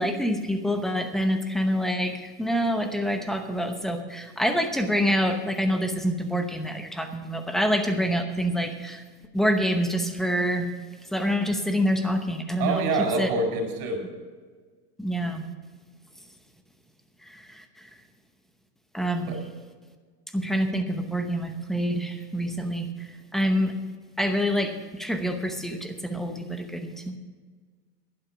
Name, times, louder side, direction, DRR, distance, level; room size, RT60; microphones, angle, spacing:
voice 1, 0.0-9.0 9.3-10.7 11.1-12.8 13.2-13.3 15.0-15.5 17.2-17.9 18.9-19.4 20.3-23.7 24.2-27.2, equal, ahead, 6 dB, 0.8 m, -26 dB
voice 2, 12.6-14.0 19.3-19.4, right 3 dB, 55° right, 3 dB, 5.0 m, -26 dB
11.5 x 11.0 x 5.8 m, 1.5 s
supercardioid pair, 140°, 48 cm